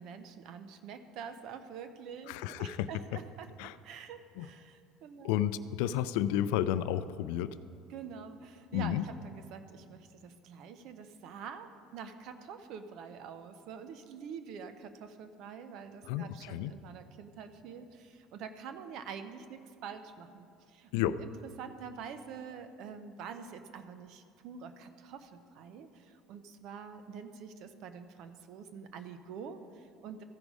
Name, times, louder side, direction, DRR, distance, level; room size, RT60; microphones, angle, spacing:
voice 1, 0.0-5.4 7.9-20.9 21.2-21.3 21.6-30.2, right 6 dB, 50° right, 9 dB, 0.6 m, -46 dB
voice 2, 2.3-2.9 3.6-3.8 4.4-4.5 5.2-7.6 8.7-9.0 16.1-16.7 20.9-21.2, left 11 dB, 85° left, 14 dB, 0.3 m, -31 dB
14.5 x 5.2 x 4.8 m, 2.4 s
cardioid pair, 165°, 0 cm